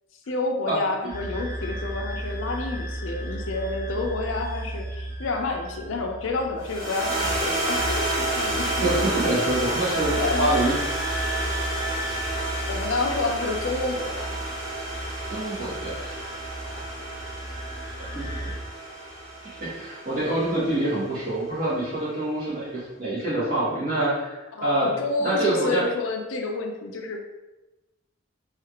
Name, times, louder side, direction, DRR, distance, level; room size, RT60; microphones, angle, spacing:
voice 1, 0.3-9.0 10.2-10.5 12.7-14.4 24.5-27.2, left 2 dB, 90° left, 3 dB, 0.5 m, -29 dB
sound 1, 1.1-18.5, right 1 dB, 25° right, 1.0 m, -35 dB
sound 2, 6.6-21.0, right 1 dB, 70° right, 1.3 m, -30 dB
voice 2, 8.8-10.8 15.3-16.2 16.6-16.9 18.1-18.5 19.6-24.9 25.2-25.8, right 1 dB, 50° right, -8 dB, 1.4 m, -26 dB
3.2 x 2.4 x 2.8 m, 1.0 s
head